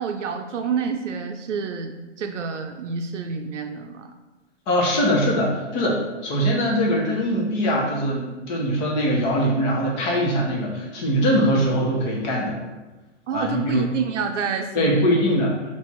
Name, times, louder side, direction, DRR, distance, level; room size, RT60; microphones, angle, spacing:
voice 1, 0.0-4.1 13.3-15.1, right 6 dB, 80° right, 5 dB, 0.6 m, -28 dB
voice 2, 4.7-12.6 13.3-13.8 14.7-15.6, equal, 40° left, -2 dB, 1.2 m, -22 dB
3.5 x 3.0 x 4.3 m, 1.1 s
hypercardioid pair, 130°, 36 cm